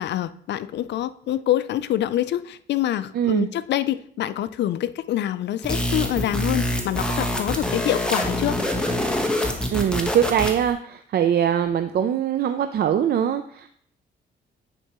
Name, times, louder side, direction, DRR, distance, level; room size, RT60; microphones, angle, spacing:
voice 1, 0.0-8.6, left 12 dB, 60° left, 15 dB, 0.4 m, -26 dB
voice 2, 3.1-3.5 9.7-13.7, right 9 dB, 55° right, 8 dB, 0.4 m, -22 dB
sound 1, 5.6-10.7, left 1 dB, 5° left, 1.1 m, -25 dB
9.3 x 4.5 x 3.0 m, 0.63 s
cardioid pair, 90°, 20 cm